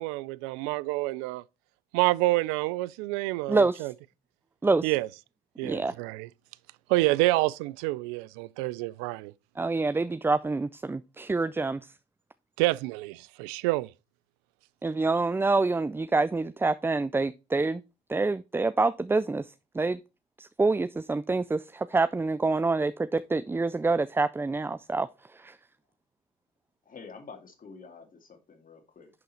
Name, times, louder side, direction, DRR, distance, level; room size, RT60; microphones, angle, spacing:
voice 1, 0.0-1.4 1.9-3.9 4.8-5.1 5.6-6.3 6.9-9.3 12.6-13.9, right 19 dB, 80° right, 0.4 m, -28 dB
voice 2, 3.5-3.8 4.6-4.9 5.6-5.9 9.6-11.9 14.8-17.8 18.1-20.0 20.4-25.6, right 3 dB, 10° right, 0.3 m, -27 dB
voice 3, 26.9-29.1, left 5 dB, 40° left, 2.3 m, -48 dB
11.0 x 3.8 x 4.3 m
hypercardioid pair, 65°, 21 cm